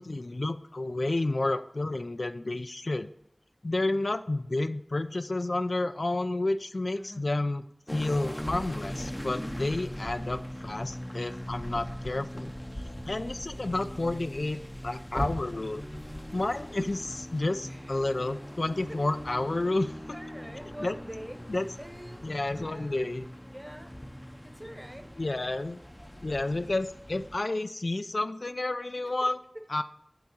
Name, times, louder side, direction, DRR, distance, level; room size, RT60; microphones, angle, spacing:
voice 1, 0.0-3.1 3.6-7.7 7.9-12.5 13.1-15.8 16.3-19.9 20.8-21.0 21.5-21.7 22.2-23.2 25.2-25.8 26.2-29.4 29.7-29.8, left 2 dB, 75° left, 10 dB, 0.3 m, -30 dB
voice 2, 6.9-7.3 17.7-18.0 18.9-19.0 20.1-21.4 21.8-22.3 22.5-23.1 23.5-23.9 24.4-25.1 29.0-29.1, equal, 15° right, 6 dB, 1.0 m, -45 dB
sound 1, 7.9-27.4, equal, 15° left, 0.6 m, -40 dB
8.3 x 3.5 x 6.3 m, 0.73 s
wide cardioid pair, 45°, 0 cm